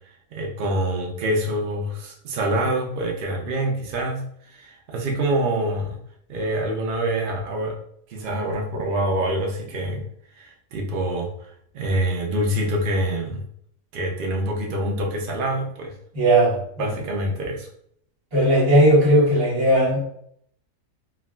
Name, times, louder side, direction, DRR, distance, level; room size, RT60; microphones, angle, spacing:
voice 1, 0.0-6.0 6.3-7.7 8.1-10.1 10.4-13.4 13.9-15.9 16.8-17.7, right 1 dB, 75° right, 0 dB, 0.4 m, -26 dB
voice 2, 16.1-16.6 18.3-20.0, right 1 dB, 45° right, -5 dB, 1.3 m, -17 dB
3.4 x 2.3 x 2.2 m, 0.67 s
omnidirectional pair, 1.5 m